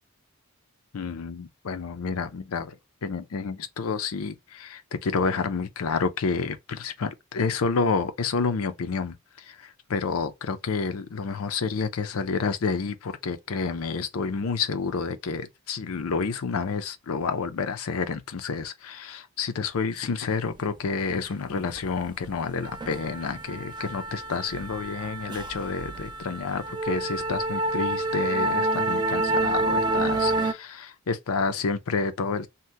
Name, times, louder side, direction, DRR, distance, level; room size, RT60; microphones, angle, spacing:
voice 1, 0.9-2.8 3.0-32.5, left 5 dB, 75° left, 0.5 m, -29 dB
sound 1, 21.7-22.0 22.2-30.5, right 2 dB, 20° right, 0.4 m, -28 dB
2.7 x 2.1 x 3.3 m
head